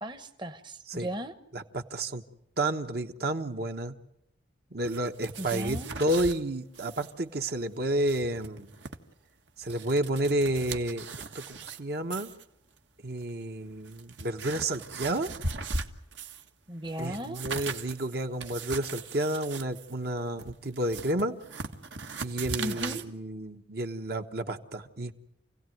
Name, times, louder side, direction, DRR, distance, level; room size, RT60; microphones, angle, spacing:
voice 1, 0.0-1.3 5.4-6.0 16.7-17.4 22.6-23.0, equal, 25° right, 8 dB, 1.0 m, -36 dB
voice 2, 1.5-2.2 2.6-3.9 4.7-8.7 9.6-11.1 11.3-12.3 13.0-15.3 17.0-21.4 22.2-25.1, right 1 dB, 55° right, 5 dB, 1.3 m, -31 dB
sound 1, 4.8-6.4 6.7-7.1 7.4-7.5 7.9-9.0 9.5-11.8 12.1-12.4 13.2-13.3 13.8-16.5 16.8-23.1, right 4 dB, 70° right, 1.7 m, -39 dB
28.5 x 17.0 x 9.3 m, 0.84 s
head